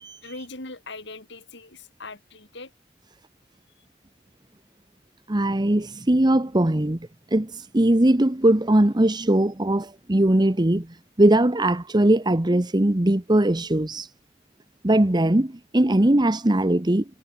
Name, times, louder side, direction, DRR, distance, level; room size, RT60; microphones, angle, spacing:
voice 1, 0.2-2.7, left 3 dB, 65° left, 6.2 m, -40 dB
voice 2, 5.3-7.0 7.3-10.9 11.2-14.1 14.8-17.0, right 1 dB, 25° right, 1.0 m, -20 dB
head